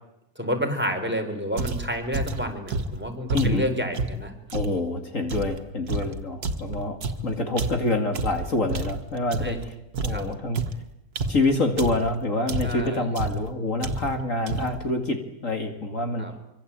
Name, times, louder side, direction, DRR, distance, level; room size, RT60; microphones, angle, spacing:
voice 1, 0.4-4.3 7.2-7.3 9.4-9.6 10.1-10.3 12.6-13.0 16.2-16.3, equal, 5° right, 3 dB, 4.5 m, -29 dB
sound 1, 1.6-4.8 5.3-9.7 9.9-12.1 12.5-12.9 13.1-13.5 13.8-14.2 14.5-14.9, right 2 dB, 80° right, 2.2 m, -30 dB
voice 2, 3.3-3.7 4.5-9.7 10.0-10.6 11.3-16.3, left 2 dB, 55° left, 5 dB, 2.7 m, -26 dB
25.0 x 25.0 x 8.8 m, 0.88 s
omnidirectional pair, 1.6 m